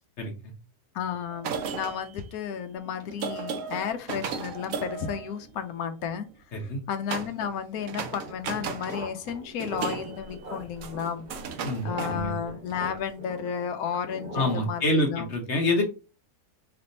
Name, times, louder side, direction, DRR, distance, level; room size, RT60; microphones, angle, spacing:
voice 1, 0.9-6.3 6.5-11.3 11.8-15.3, left 7 dB, 75° left, 8 dB, 1.1 m, -33 dB
sound 1, 1.3-6.0 7.1-7.6 7.8-9.0 9.3-12.9, right 6 dB, 70° right, 1.1 m, -36 dB
sound 2, 7.7-14.8, right 1 dB, 35° right, 1.6 m, -42 dB
voice 2, 11.6-12.3 14.3-15.8, left 1 dB, 55° left, 2 dB, 1.2 m, -26 dB
3.4 x 3.4 x 3.9 m, 0.32 s
omnidirectional pair, 1.6 m